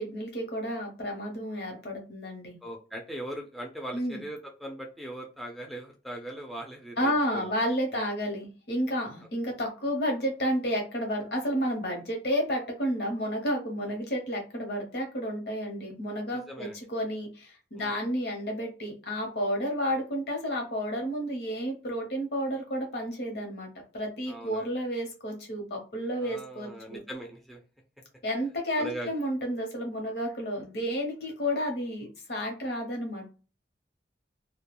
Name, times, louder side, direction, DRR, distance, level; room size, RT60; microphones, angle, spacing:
voice 1, 0.0-2.6 3.9-4.2 7.0-27.0 28.2-33.3, equal, 65° left, 1 dB, 0.9 m, -31 dB
voice 2, 2.6-7.5 13.9-14.0 16.3-16.8 17.7-18.0 24.3-24.7 26.2-27.6 28.8-29.1, right 1 dB, ahead, 0 dB, 0.4 m, -40 dB
2.3 x 2.2 x 3.0 m, 0.34 s
head